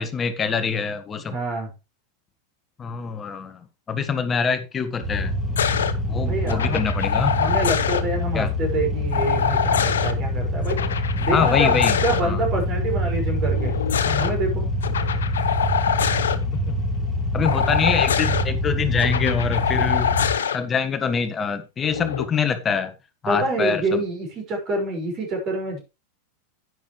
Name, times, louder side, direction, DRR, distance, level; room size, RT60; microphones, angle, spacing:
voice 1, 0.0-1.4 2.8-3.6 3.9-5.3 6.1-7.4 8.3-8.5 11.3-12.4 16.5-16.8 17.3-20.1 20.5-22.9 23.2-24.0, left 6 dB, 20° left, 1.4 m, -25 dB
voice 2, 1.3-1.7 6.2-6.8 7.2-14.7 17.4-17.7 23.3-25.8, right 2 dB, 35° right, 5.5 m, -27 dB
sound 1, 5.0-20.3, left 1 dB, 10° right, 2.8 m, -25 dB
sound 2, 5.6-5.9 6.5-8.0 9.1-10.1 10.7-12.2 13.5-14.3 14.8-16.4 17.4-18.4 19.0-20.6 21.9-22.2, left 7 dB, 65° left, 1.0 m, -24 dB
11.0 x 9.4 x 3.2 m
figure-of-eight pair, 90°, 0 cm